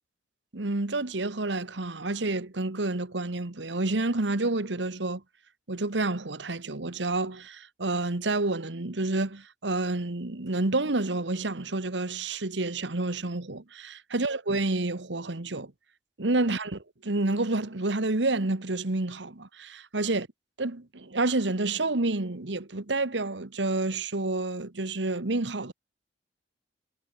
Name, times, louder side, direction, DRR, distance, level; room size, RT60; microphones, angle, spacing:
voice 1, 0.5-5.2 5.7-15.7 16.2-20.3 20.6-25.7, right 2 dB, 80° right, 1.5 m, -29 dB
head